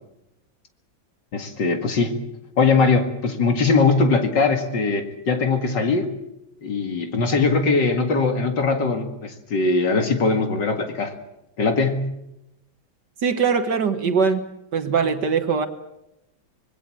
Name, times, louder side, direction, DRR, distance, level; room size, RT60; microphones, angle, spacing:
voice 1, 1.3-2.2 2.6-6.1 6.6-11.1 11.6-12.0, left 4 dB, 65° left, 6 dB, 2.6 m, -21 dB
voice 2, 13.2-14.4 14.7-15.7, right 5 dB, 60° right, 8 dB, 1.8 m, -21 dB
26.0 x 20.5 x 7.6 m, 0.88 s
omnidirectional pair, 2.1 m